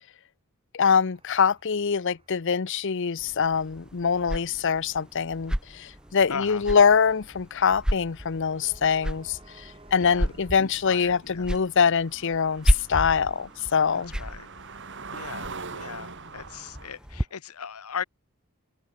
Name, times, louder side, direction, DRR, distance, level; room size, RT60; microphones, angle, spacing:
voice 1, 0.7-14.1, left 6 dB, 55° left, 0.6 m, -24 dB
sound 1, 0.8-17.4, right 2 dB, 25° right, 4.1 m, -59 dB
sound 2, 3.2-17.2, equal, 5° right, 1.2 m, -33 dB
voice 2, 6.3-6.6 10.0-10.3 10.6-11.5 14.1-14.5 15.1-18.0, left 6 dB, 75° left, 1.0 m, -37 dB
sound 3, 10.6-10.7 10.9-16.9, right 4 dB, 55° right, 3.2 m, -42 dB
open air
head